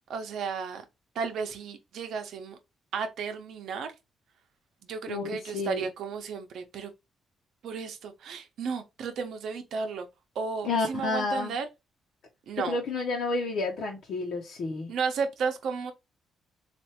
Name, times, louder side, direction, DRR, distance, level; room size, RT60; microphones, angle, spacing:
voice 1, 0.1-0.8 1.1-2.6 2.9-3.9 4.8-6.9 7.6-10.1 10.3-11.7 12.5-12.8 14.9-15.9, right 5 dB, 75° right, 0.9 m, -33 dB
voice 2, 5.1-5.9 10.6-11.6 12.5-14.9, left 3 dB, 65° left, 1.0 m, -30 dB
3.4 x 2.6 x 4.3 m
cardioid pair, 90°, 0 cm